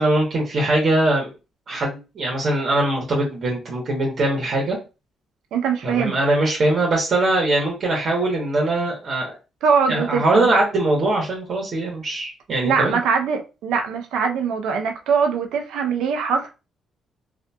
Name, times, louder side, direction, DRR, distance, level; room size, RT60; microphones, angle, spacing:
voice 1, 0.0-1.3 1.7-4.8 5.8-9.4 9.9-13.0, right 2 dB, 55° right, 1.1 m, -21 dB
voice 2, 5.5-6.2 9.6-10.5 12.6-16.5, right 6 dB, 85° right, 0.6 m, -22 dB
2.6 x 2.5 x 2.3 m
cardioid pair, 90°, 0 cm